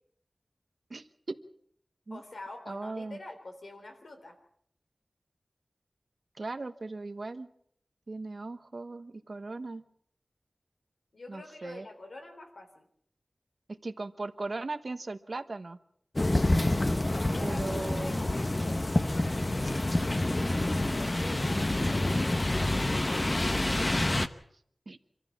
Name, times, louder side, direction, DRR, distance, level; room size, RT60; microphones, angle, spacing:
voice 1, 0.9-1.4 2.1-2.2 2.7-3.2 6.4-7.5 8.1-9.8 11.3-11.9 13.7-15.8 17.4-18.2 24.9-25.0, right 3 dB, 60° right, 11 dB, 1.1 m, -38 dB
voice 2, 2.1-4.4 11.1-12.9 17.2-18.4 18.9-23.3, left 2 dB, 85° left, 5 dB, 3.9 m, -47 dB
sound 1, 16.2-24.3, left 1 dB, 35° left, 1.0 m, -27 dB
25.5 x 14.5 x 7.3 m, 0.67 s
wide cardioid pair, 75°, 0 cm